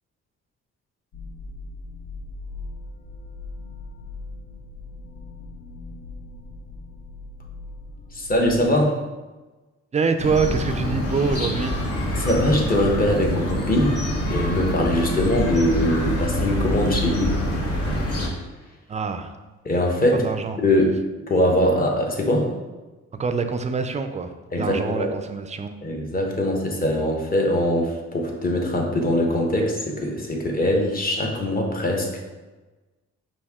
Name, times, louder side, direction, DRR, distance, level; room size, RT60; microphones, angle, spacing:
sound 1, 1.1-8.7, left 3 dB, 70° left, 0.7 m, -39 dB
voice 1, 8.1-8.9 12.1-14.0 14.3-17.6 19.6-20.2 20.6-21.0 21.3-22.5 24.5-25.1 25.8-32.2, left 1 dB, 30° left, 0 dB, 1.0 m, -22 dB
voice 2, 9.9-11.8 18.9-19.3 20.1-20.6 23.2-24.3 24.6-25.8, right 5 dB, 25° right, 8 dB, 0.4 m, -25 dB
sound 2, 10.2-18.3, equal, 55° left, 1.2 m, -26 dB
5.2 x 2.6 x 3.5 m, 1.2 s
cardioid pair, 90°, 30 cm